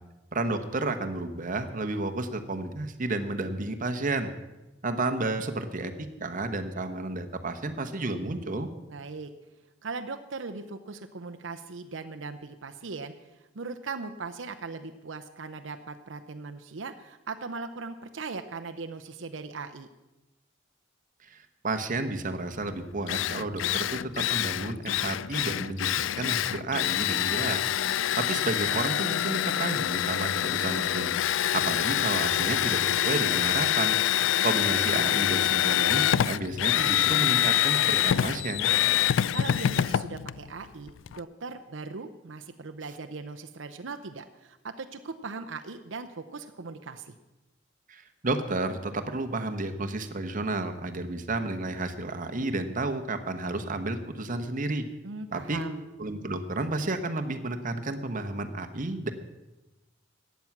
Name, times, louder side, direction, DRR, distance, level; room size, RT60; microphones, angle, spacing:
voice 1, 0.3-4.3 4.8-8.7 21.2-27.6 27.9-34.0 34.4-38.7 47.9-54.9 55.3-55.6 56.0-59.1, right 2 dB, 45° right, 8 dB, 1.1 m, -31 dB
voice 2, 8.9-9.3 9.8-13.1 13.5-19.9 34.1-34.7 39.3-47.1 55.0-55.8, right 4 dB, 80° right, 7 dB, 0.7 m, -39 dB
Drill, 22.6-22.7 23.1-41.2, left 11 dB, 80° left, 0.3 m, -26 dB
14.5 x 9.5 x 6.0 m, 1.0 s
head